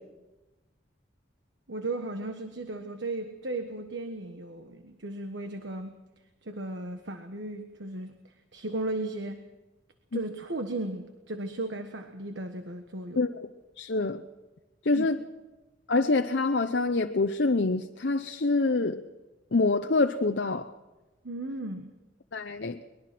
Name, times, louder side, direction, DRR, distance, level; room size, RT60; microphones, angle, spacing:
voice 1, 1.7-6.0 6.4-9.4 10.1-13.3 14.9-15.1 21.2-21.9, right 2 dB, 70° right, 7 dB, 1.3 m, -36 dB
voice 2, 13.8-14.2 14.8-15.2 15.9-19.0 19.5-20.7 22.3-22.8, left 3 dB, 60° left, 5 dB, 0.8 m, -26 dB
23.0 x 21.5 x 6.0 m, 1.1 s
head